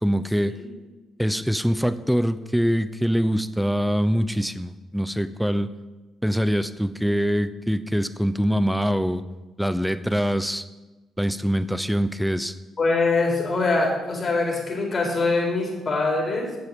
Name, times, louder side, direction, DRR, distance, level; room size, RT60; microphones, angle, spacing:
voice 1, 0.0-0.6 1.2-5.7 6.2-9.2 9.6-10.6 11.2-12.5, equal, ahead, 13 dB, 0.8 m, -24 dB
voice 2, 12.8-16.6, left 3 dB, 40° left, 0 dB, 4.7 m, -23 dB
10.5 x 7.9 x 8.8 m, 1.2 s
cardioid pair, 90°, 0 cm